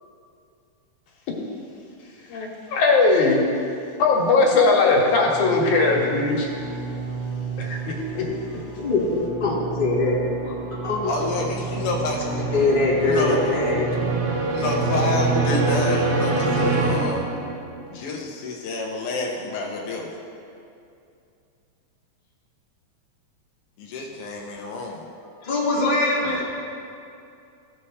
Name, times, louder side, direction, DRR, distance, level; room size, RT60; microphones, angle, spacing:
voice 1, 2.3-3.4 4.0-6.5 7.6-8.3, left 3 dB, 85° left, -1 dB, 2.5 m, -19 dB
sound 1, 5.1-17.8, right 3 dB, 65° right, 2.1 m, -27 dB
voice 2, 8.8-10.1 10.8-11.1 12.5-13.9 25.4-26.5, left 3 dB, 25° left, -6 dB, 1.3 m, -22 dB
voice 3, 11.1-12.2 13.0-13.6 14.5-17.2 17.9-20.1 23.8-25.0, left 3 dB, 70° left, -1 dB, 1.4 m, -28 dB
15.0 x 5.7 x 3.3 m, 2.6 s
omnidirectional pair, 3.4 m